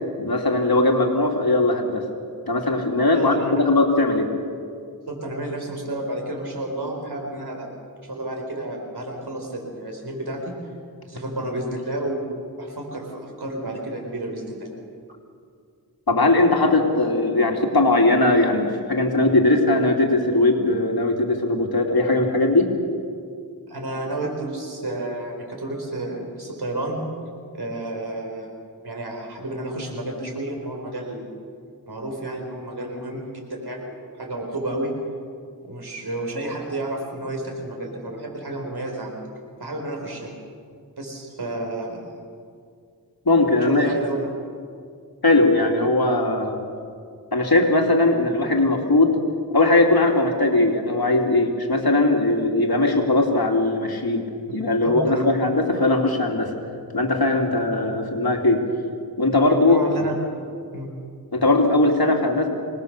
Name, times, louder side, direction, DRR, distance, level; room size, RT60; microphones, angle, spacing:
voice 1, 0.2-2.1 2.5-4.3 16.1-22.7 43.2-44.0 45.2-46.6 47.3-49.2 49.5-54.2 54.5-56.5 56.9-58.6 59.2-59.8 61.3-62.5, left 2 dB, 70° left, 1 dB, 3.0 m, -19 dB
voice 2, 3.1-3.7 5.1-7.7 8.0-10.5 11.1-12.2 12.6-14.7 23.7-27.0 27.5-28.5 28.8-31.3 31.9-34.9 35.6-39.2 39.6-40.3 41.0-42.0 43.6-44.3 54.5-54.6 54.8-55.4 57.5-57.6 59.5-60.1 60.7-60.9, right 1 dB, 85° right, 2 dB, 4.7 m, -31 dB
25.5 x 20.0 x 6.8 m, 2.2 s
wide cardioid pair, 45°, 38 cm